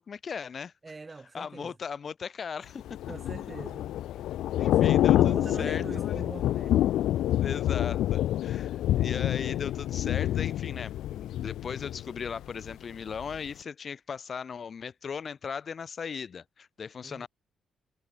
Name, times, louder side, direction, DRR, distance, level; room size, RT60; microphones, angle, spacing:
voice 1, 0.0-0.7 1.3-3.0 4.6-6.2 7.4-17.3, left 6 dB, 45° left, 7.4 m, -38 dB
voice 2, 0.8-1.7 3.1-3.9 4.1-4.3 4.7-6.8 17.0-17.3, right 3 dB, 25° right, 6.2 m, -42 dB
Thunder / Rain, 2.8-12.7 13.1-13.3, left 13 dB, 85° left, 1.3 m, -27 dB
cardioid pair, 95°, 0 cm